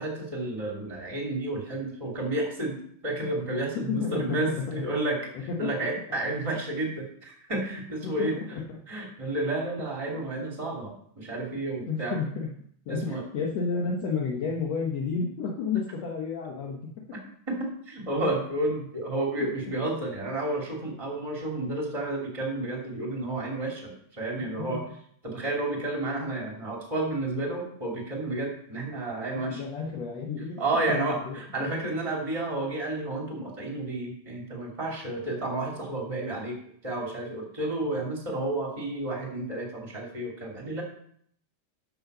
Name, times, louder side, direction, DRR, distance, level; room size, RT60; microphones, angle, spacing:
voice 1, 0.0-5.2 5.6-8.3 8.9-12.2 12.9-13.2 17.5-24.8 25.2-29.6 30.6-36.6 36.8-40.8, right 2 dB, 10° right, -1 dB, 2.1 m, -31 dB
voice 2, 3.8-4.9 5.3-5.7 8.0-8.6 11.9-12.5 12.9-16.9 19.4-19.5 24.6-24.8 29.5-31.7, left 5 dB, 60° left, 0 dB, 2.1 m, -31 dB
12.0 x 5.5 x 6.7 m, 0.65 s
omnidirectional pair, 3.8 m